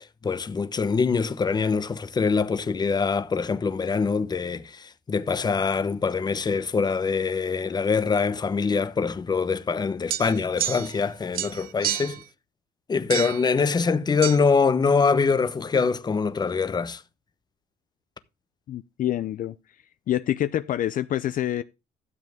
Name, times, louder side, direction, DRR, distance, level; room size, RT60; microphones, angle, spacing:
voice 1, 0.2-12.2 12.9-17.0, left 5 dB, 25° left, 0.9 m, -24 dB
sound 1, 10.1-11.1 11.3-12.2 13.1-13.5 14.2-14.4, right 12 dB, 60° right, 0.6 m, -30 dB
voice 2, 18.7-19.5 20.1-21.6, left 12 dB, 55° left, 0.6 m, -26 dB
12.5 x 7.5 x 3.5 m
cardioid pair, 110°, 17 cm